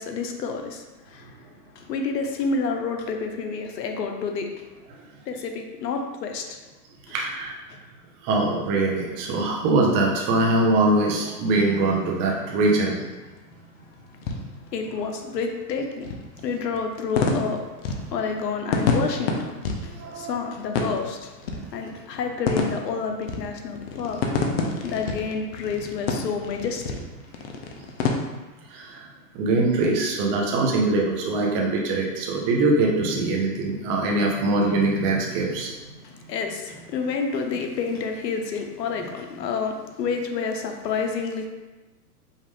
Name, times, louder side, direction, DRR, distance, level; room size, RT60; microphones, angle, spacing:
voice 1, 0.0-1.4 1.7-4.7 5.3-6.6 7.1-7.2 7.7-7.8 14.7-17.6 18.1-21.4 21.7-24.3 24.8-27.0 36.0-41.5, left 5 dB, 80° left, 4 dB, 0.9 m, -29 dB
voice 2, 7.1-7.5 8.2-13.0 19.9-20.4 28.7-29.1 29.3-35.7, right 2 dB, 25° right, -1 dB, 0.6 m, -22 dB
sound 1, 11.1-28.1, left 4 dB, 40° left, 0.6 m, -30 dB
5.3 x 2.5 x 3.5 m, 1.2 s
hypercardioid pair, 140°, 49 cm